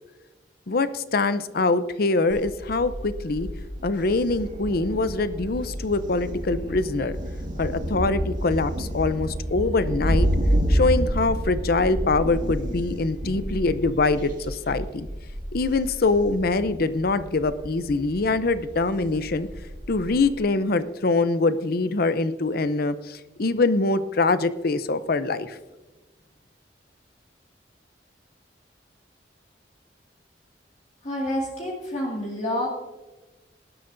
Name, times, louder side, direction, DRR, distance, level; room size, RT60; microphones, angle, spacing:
voice 1, 0.7-3.5 3.8-7.2 7.6-10.3 10.7-15.1 15.5-19.5 19.9-25.6, left 3 dB, 60° left, 13 dB, 0.7 m, -24 dB
Thunder, 2.3-20.4, equal, 50° right, 2.1 m, -29 dB
voice 2, 31.0-32.7, left 1 dB, 40° left, -3 dB, 2.2 m, -28 dB
18.5 x 11.5 x 2.6 m, 1.2 s
head